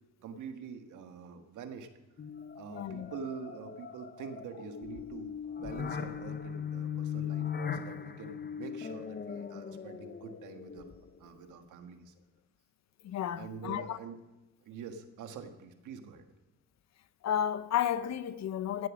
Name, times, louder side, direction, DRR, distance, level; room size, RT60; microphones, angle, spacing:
voice 1, 0.2-1.9 2.5-7.4 7.7-10.9 11.2-12.1 13.4-14.2 14.6-16.2, right 6 dB, 80° right, 1.5 m, -45 dB
sound 1, 2.2-11.3, left 7 dB, 35° left, 0.9 m, -39 dB
voice 2, 2.7-3.1 13.0-14.0 17.2-18.9, left 10 dB, 65° left, 0.8 m, -32 dB
16.0 x 7.8 x 6.2 m
cardioid pair, 90°, 30 cm